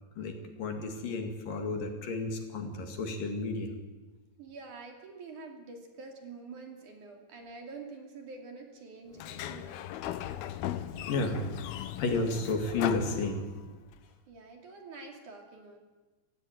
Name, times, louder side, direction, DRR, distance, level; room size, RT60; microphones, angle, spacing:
voice 1, 0.2-3.8 11.1-11.4 12.0-13.5, left 3 dB, 60° left, 4 dB, 3.8 m, -32 dB
voice 2, 4.4-9.9 14.3-15.8, right 4 dB, 55° right, 3 dB, 4.0 m, -47 dB
Sliding door, 9.1-13.9, left 11 dB, 80° left, 2.9 m, -37 dB
26.0 x 16.0 x 9.3 m, 1.2 s
omnidirectional pair, 4.5 m